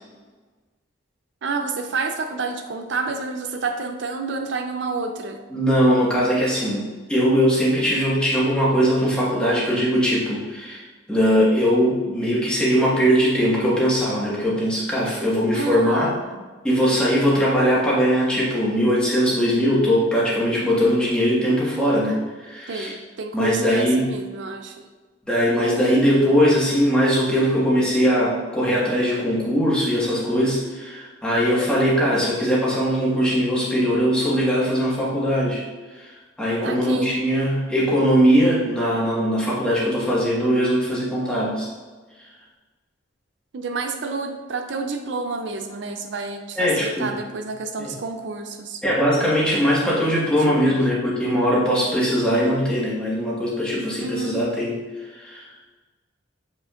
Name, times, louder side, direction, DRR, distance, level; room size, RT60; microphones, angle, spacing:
voice 1, 1.4-5.4 7.8-7.9 15.5-16.4 22.7-24.8 36.6-37.1 43.5-48.8 50.5-50.7 54.0-54.5, right 4 dB, 70° right, 6 dB, 0.5 m, -29 dB
voice 2, 5.5-10.8 11.1-16.1 16.6-22.9 23.3-24.1 25.3-35.6 35.9-36.1 36.4-41.7 46.5-47.2 47.8-47.9 48.8-55.5, equal, 5° left, -7 dB, 1.6 m, -20 dB
7.3 x 5.2 x 2.5 m, 1.3 s
head